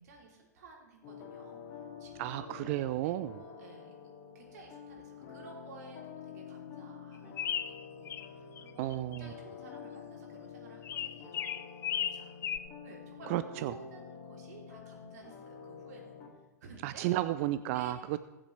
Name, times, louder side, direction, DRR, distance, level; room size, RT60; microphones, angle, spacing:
voice 1, 0.0-4.0 4.2-7.4 7.7-11.6 11.9-12.3 12.8-16.1 16.6-17.0 17.7-17.9, right 3 dB, 70° right, -1 dB, 3.3 m, -54 dB
sound 1, 1.0-16.3, left 7 dB, 40° left, 2.5 m, -48 dB
voice 2, 2.2-3.4 8.8-9.3 13.3-13.7 16.8-18.2, right 15 dB, 50° right, 13 dB, 0.4 m, -33 dB
sound 2, 7.4-8.3 8.6-9.2 10.8-12.6, left 9 dB, 25° left, 0.5 m, -35 dB
20.0 x 7.4 x 3.3 m, 1.1 s
hypercardioid pair, 100°, 9 cm